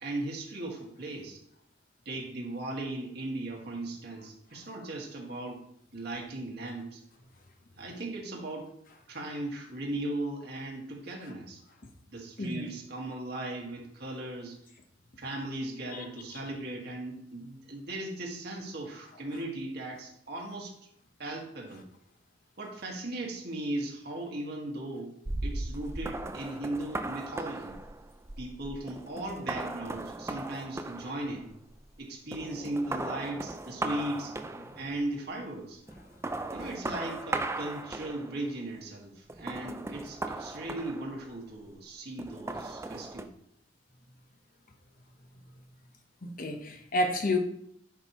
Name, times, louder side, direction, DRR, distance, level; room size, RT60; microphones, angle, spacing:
voice 1, 0.0-1.4 2.1-5.6 5.9-7.0 7.8-8.7 9.1-11.6 12.1-14.6 15.2-20.7 21.2-21.9 22.6-25.1 25.4-27.7 28.4-31.5 32.0-34.3 34.8-35.8 36.5-43.3, right 1 dB, 60° right, 0 dB, 1.8 m, -37 dB
sound 1, 25.2-32.0 32.3-35.0 35.9-38.5 39.3-41.5 42.2-43.2, right 2 dB, 15° right, 0.4 m, -37 dB
voice 2, 46.2-47.4, left 1 dB, 50° left, 4 dB, 1.0 m, -30 dB
10.5 x 5.4 x 3.1 m, 0.70 s
head